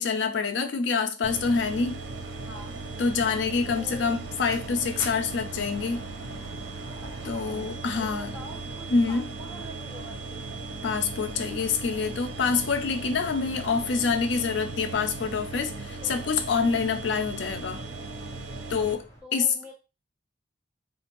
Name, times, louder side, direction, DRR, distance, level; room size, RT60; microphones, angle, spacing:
voice 1, 0.0-2.0 3.0-6.1 7.2-8.3 8.9-9.2 10.8-17.8 18.7-19.7, left 5 dB, 65° left, 0.4 m, -26 dB
sound 1, 1.2-18.9, right 3 dB, 80° right, 0.6 m, -38 dB
sound 2, 1.5-19.2, equal, 15° left, 1.0 m, -49 dB
voice 2, 2.4-2.8 3.7-4.2 7.0-7.5 7.9-10.7 16.0-16.3 19.2-19.7, equal, 5° right, 1.1 m, -45 dB
3.8 x 2.5 x 2.9 m
head